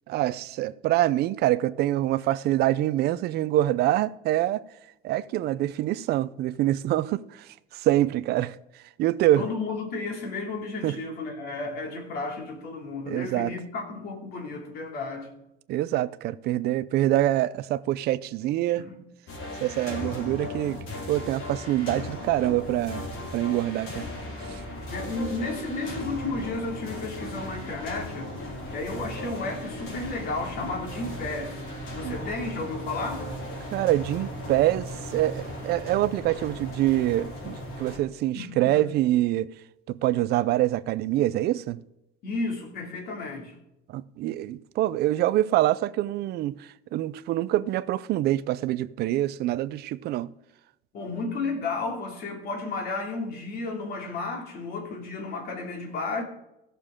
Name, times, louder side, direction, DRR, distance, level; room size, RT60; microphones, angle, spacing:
voice 1, 0.1-4.6 5.0-7.5 7.7-8.6 9.0-9.4 10.8-11.0 13.1-13.5 15.7-18.9 19.6-20.8 21.1-23.1 23.3-24.1 24.5-24.6 32.0-32.2 33.7-34.9 35.1-39.5 39.9-41.8 43.9-50.3, right 14 dB, 50° right, 0.5 m, -25 dB
voice 2, 9.3-15.3 18.7-19.0 24.9-28.3 28.7-31.6 31.9-33.3 38.3-38.8 42.2-43.6 50.9-56.2, left 3 dB, 50° left, 2.7 m, -33 dB
sound 1, 19.3-38.0, left 1 dB, 65° left, 4.1 m, -37 dB
16.5 x 6.8 x 3.7 m
cardioid pair, 150°, 21 cm